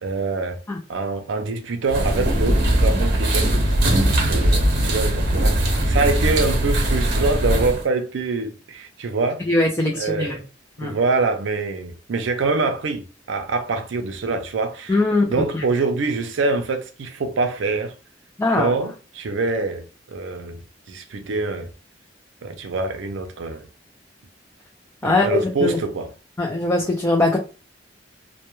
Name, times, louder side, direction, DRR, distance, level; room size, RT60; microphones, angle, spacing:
voice 1, 0.0-0.6 0.9-3.8 4.3-9.4 10.0-10.4 10.8-15.0 15.2-17.9 18.5-20.6 20.9-21.7 22.4-23.7 25.0-26.1, right 3 dB, 90° right, 0.5 m, -25 dB
sound 1, 1.9-7.8, right 1 dB, 60° right, 0.8 m, -20 dB
voice 2, 9.4-10.4 10.8-10.9 14.9-15.3 15.5-15.6 18.4-18.7 25.0-25.8 26.4-27.4, left 2 dB, 15° left, 0.3 m, -21 dB
2.1 x 2.1 x 3.0 m
head